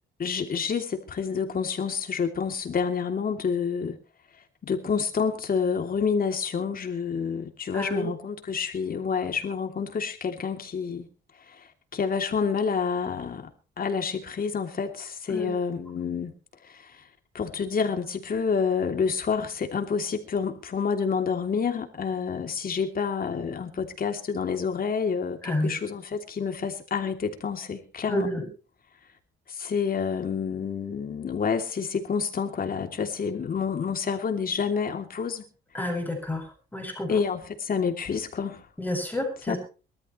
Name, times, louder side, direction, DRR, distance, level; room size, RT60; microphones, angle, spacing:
voice 1, 0.2-4.0 4.6-11.1 11.5-11.6 11.9-13.5 13.8-16.3 16.6-17.0 17.3-28.3 29.5-35.4 37.1-38.6 39.5-39.6, left 6 dB, 45° left, 5 dB, 3.1 m, -28 dB
voice 2, 7.7-8.1 15.3-15.5 25.4-25.7 28.1-28.4 35.7-36.4 36.7-37.1 38.8-39.6, left 1 dB, 10° left, 2 dB, 6.9 m, -29 dB
23.5 x 13.5 x 3.2 m, 0.35 s
cardioid pair, 90°, 20 cm